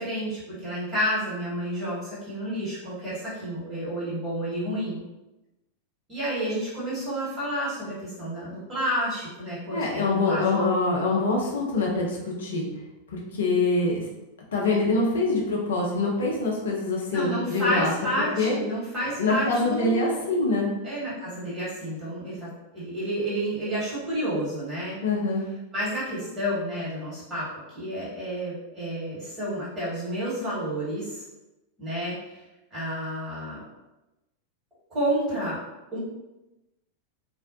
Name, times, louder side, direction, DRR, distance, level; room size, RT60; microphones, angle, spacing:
voice 1, 0.0-5.0 6.1-10.7 17.1-20.3 20.8-25.0 25.7-31.3 31.8-32.4 32.7-33.6 34.9-35.6 35.9-36.0, equal, 20° right, -8 dB, 1.5 m, -30 dB
voice 2, 9.7-12.6 13.1-14.0 14.5-17.9 18.4-18.6 19.2-20.7 25.0-25.4, left 3 dB, 65° left, -2 dB, 0.5 m, -24 dB
2.5 x 2.1 x 2.6 m, 0.99 s
figure-of-eight pair, 90°, 0 cm